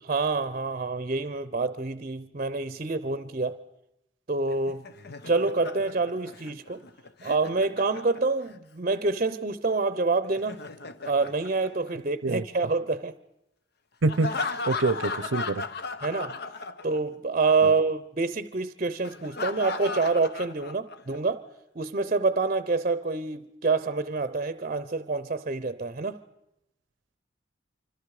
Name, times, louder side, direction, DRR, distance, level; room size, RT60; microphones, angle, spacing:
voice 1, 0.1-3.6 4.3-4.9 5.3-6.8 7.2-10.6 11.0-13.1 16.0-16.4 16.8-21.5 21.8-26.2, right 3 dB, 40° right, 0.7 m, -27 dB
Laughter, 4.5-8.6 10.2-12.4 14.1-17.1 17.4-17.6 19.0-21.2, left 4 dB, 60° left, 1.0 m, -36 dB
voice 2, 14.0-15.6 17.6-17.7, right 3 dB, 85° right, 0.7 m, -26 dB
26.0 x 25.5 x 4.9 m
head